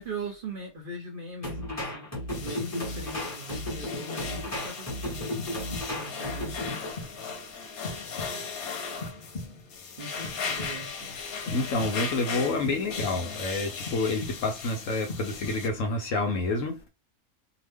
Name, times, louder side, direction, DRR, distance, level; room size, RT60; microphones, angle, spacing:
voice 1, 0.0-2.1 2.4-5.3 5.9-6.8 10.0-11.2, right 2 dB, 50° right, 0.7 m, -40 dB
sound 1, 1.4-6.9, left 1 dB, 10° left, 1.2 m, -34 dB
sound 2, 2.3-15.7, left 5 dB, 85° left, 1.2 m, -38 dB
sound 3, 5.4-6.2 6.6-7.3 7.8-8.6 9.0-9.8 10.2-11.0 11.5-12.3 12.6-13.4 13.9-14.7 15.1-15.9, left 3 dB, 40° left, 0.7 m, -41 dB
voice 2, 11.5-16.8, left 3 dB, 65° left, 1.1 m, -28 dB
2.8 x 2.2 x 3.4 m
omnidirectional pair, 1.5 m